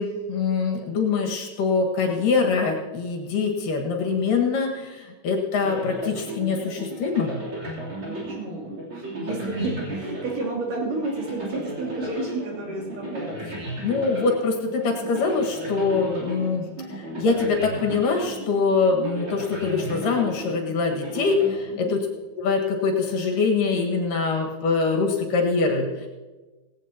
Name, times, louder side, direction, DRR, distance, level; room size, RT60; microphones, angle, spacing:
voice 1, 0.0-7.3 13.8-22.1 22.4-26.1, left 4 dB, 80° left, 1 dB, 3.4 m, -24 dB
sound 1, 5.6-22.2, right 1 dB, 40° right, 4.1 m, -34 dB
voice 2, 8.0-13.6 21.7-21.9, right 2 dB, 75° right, -4 dB, 4.7 m, -31 dB
17.5 x 17.0 x 2.9 m, 1.2 s
omnidirectional pair, 3.8 m